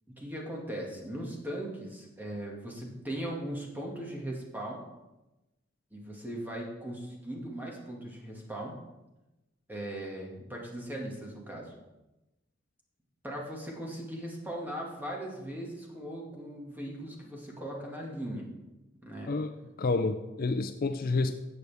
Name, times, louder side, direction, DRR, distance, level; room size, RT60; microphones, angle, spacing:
voice 1, 0.1-4.8 5.9-8.7 9.7-11.7 13.2-18.5 19.0-19.3, right 1 dB, 10° right, -2 dB, 2.0 m, -39 dB
voice 2, 19.8-21.3, left 3 dB, 45° left, 8 dB, 0.5 m, -29 dB
13.5 x 7.9 x 3.5 m, 1.0 s
head